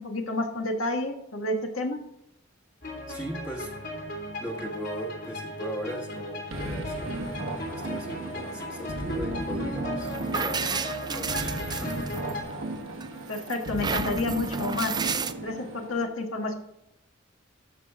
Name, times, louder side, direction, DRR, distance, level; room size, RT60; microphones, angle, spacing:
voice 1, 0.0-2.0 13.3-14.9 15.4-16.5, left 2 dB, 85° left, 3 dB, 1.7 m, -29 dB
sound 1, 2.8-12.4, equal, 55° left, 3.3 m, -36 dB
voice 2, 3.1-4.1 4.4-12.1, right 1 dB, 20° left, -2 dB, 1.3 m, -39 dB
sound 2, 6.5-16.0, right 1 dB, 70° right, 1.2 m, -35 dB
sound 3, 10.0-12.5 13.0-15.3, right 5 dB, 20° right, 0.4 m, -32 dB
14.0 x 5.5 x 3.6 m, 0.82 s
head